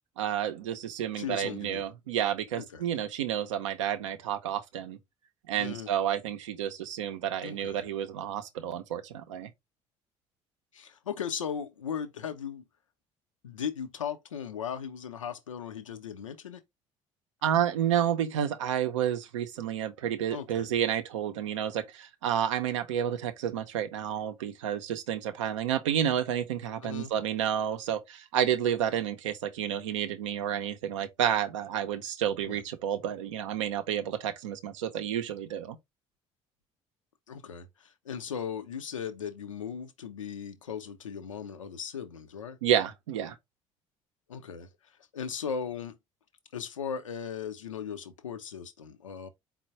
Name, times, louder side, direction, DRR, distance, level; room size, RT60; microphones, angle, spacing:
voice 1, 0.2-5.0 5.5-9.5 17.4-35.8 42.6-43.4, right 9 dB, 75° right, 0.5 m, -30 dB
voice 2, 1.1-1.8 2.6-2.9 5.6-5.9 7.4-7.8 10.7-12.6 13.4-16.6 20.3-20.8 26.8-27.1 32.4-32.6 37.3-42.6 44.3-44.7 45.1-46.0 46.5-49.3, left 7 dB, 80° left, 0.5 m, -37 dB
4.4 x 2.0 x 4.0 m
figure-of-eight pair, 55°, 16 cm